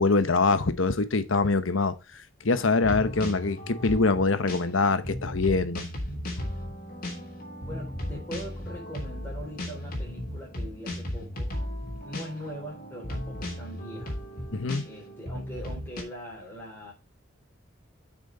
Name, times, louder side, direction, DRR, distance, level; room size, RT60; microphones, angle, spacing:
voice 1, 0.0-2.0 2.4-5.8 6.1-6.2 14.5-14.8, left 3 dB, 80° left, 1.0 m, -24 dB
sound 1, 2.6-16.0, left 1 dB, 45° left, 3.1 m, -36 dB
voice 2, 7.7-11.7 12.0-14.2 14.8-16.9, equal, 10° left, 4.0 m, -41 dB
8.7 x 6.1 x 3.9 m
head